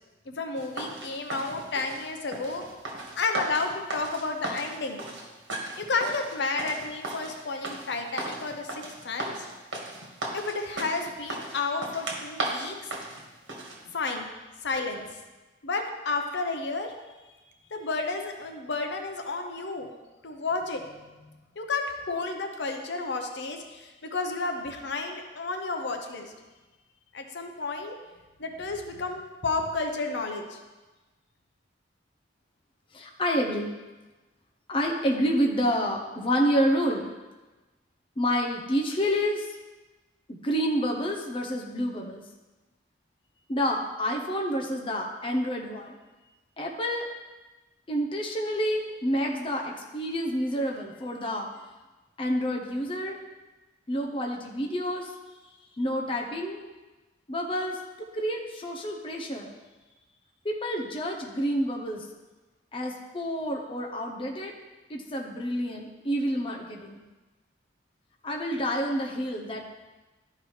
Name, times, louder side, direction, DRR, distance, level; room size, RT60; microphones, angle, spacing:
voice 1, 0.3-2.7 3.2-5.0 5.8-9.3 10.3-12.7 13.9-14.3 14.6-15.0 15.6-16.9 17.7-19.9 20.2-21.3 21.6-26.3 27.1-28.0 28.4-30.6, left 3 dB, 65° left, 4 dB, 0.8 m, -31 dB
sound 1, 0.6-13.8, right 2 dB, 80° right, 1.5 m, -36 dB
voice 2, 32.9-33.7 34.7-37.1 38.2-39.5 40.3-42.2 43.5-46.0 46.6-47.1 47.9-51.5 52.2-53.2 53.9-55.1 55.8-56.7 57.3-59.5 60.4-62.0 62.7-64.5 64.9-67.0 68.2-69.6, equal, 30° left, 1 dB, 0.7 m, -28 dB
12.0 x 4.7 x 3.2 m, 1.2 s
head